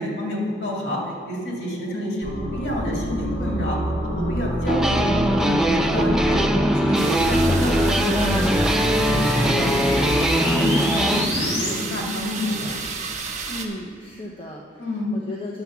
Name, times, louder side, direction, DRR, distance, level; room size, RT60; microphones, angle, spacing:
voice 1, 0.0-5.0 5.4-6.4 6.7-10.1 10.4-12.7 14.8-15.1, left 1 dB, 85° left, -2 dB, 2.3 m, -28 dB
sound 1, 2.2-11.7, equal, 65° left, 2.8 m, -26 dB
sound 2, 4.7-11.3, equal, 5° right, 0.4 m, -21 dB
sound 3, 6.9-13.7, right 4 dB, 40° right, 1.0 m, -32 dB
voice 2, 13.5-15.6, left 1 dB, 30° left, -2 dB, 0.8 m, -35 dB
9.7 x 5.8 x 7.2 m, 2.2 s
head